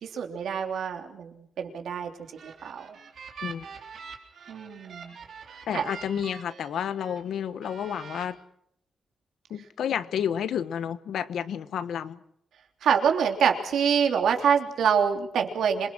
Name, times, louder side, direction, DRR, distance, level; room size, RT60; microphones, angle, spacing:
voice 1, 0.0-2.1 2.4-3.0 4.5-5.1 5.5-5.9 12.8-15.9, right 7 dB, 80° right, 3 dB, 3.3 m, -26 dB
sound 1, 2.1-7.2 7.6-8.2, right 6 dB, 55° right, 3.7 m, -44 dB
voice 2, 5.7-8.4 9.5-12.2, left 8 dB, 80° left, 13 dB, 1.2 m, -30 dB
26.5 x 22.5 x 6.2 m, 0.74 s
wide cardioid pair, 180°, 0 cm